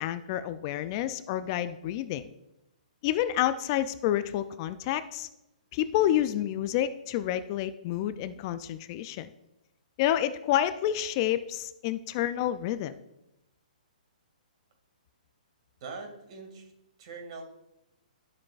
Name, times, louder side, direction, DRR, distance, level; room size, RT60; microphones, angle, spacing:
voice 1, 0.0-2.3 3.0-5.3 5.7-9.3 10.0-13.0, left 12 dB, 30° left, 13 dB, 0.4 m, -29 dB
voice 2, 15.8-16.7 17.0-17.4, right 4 dB, 50° right, 4 dB, 2.2 m, -42 dB
12.5 x 7.3 x 2.4 m, 0.87 s
hypercardioid pair, 150°, 5 cm